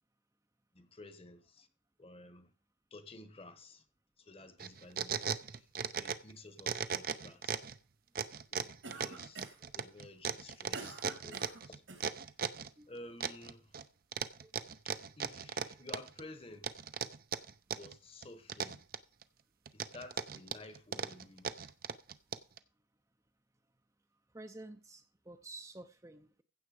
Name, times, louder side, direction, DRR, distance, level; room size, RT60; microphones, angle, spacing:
voice 1, 0.7-1.7 2.0-2.5 2.9-3.8 4.2-5.7 6.0-7.7 8.5-11.8 12.9-13.8 15.2-16.7 17.8-18.8 19.7-21.7, left 2 dB, 30° left, 1.2 m, -53 dB
sound 1, 4.6-6.3 6.6-7.7 8.1-12.7 13.2-13.8 14.1-16.2 16.6-17.9 18.2-19.2 19.7-22.6, right 6 dB, 50° right, 0.7 m, -37 dB
Cough, 8.8-9.7 10.3-12.1, right 3 dB, 85° right, 3.2 m, -48 dB
voice 2, 24.3-26.4, right 2 dB, 15° right, 0.7 m, -51 dB
15.5 x 7.1 x 5.0 m
head